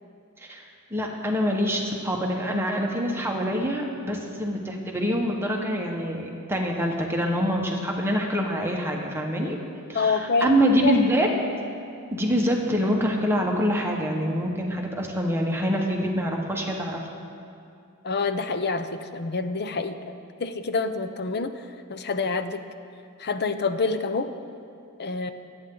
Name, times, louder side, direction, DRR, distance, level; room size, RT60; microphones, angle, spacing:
voice 1, 0.9-9.6 9.9-11.3 12.1-17.0, equal, 10° right, 0 dB, 1.4 m, -25 dB
voice 2, 9.9-10.5 10.8-11.0 18.0-20.1 20.4-21.6 21.9-22.6 23.2-24.3 25.0-25.3, left 4 dB, 50° left, 9 dB, 0.7 m, -27 dB
26.5 x 9.0 x 3.9 m, 2.5 s
head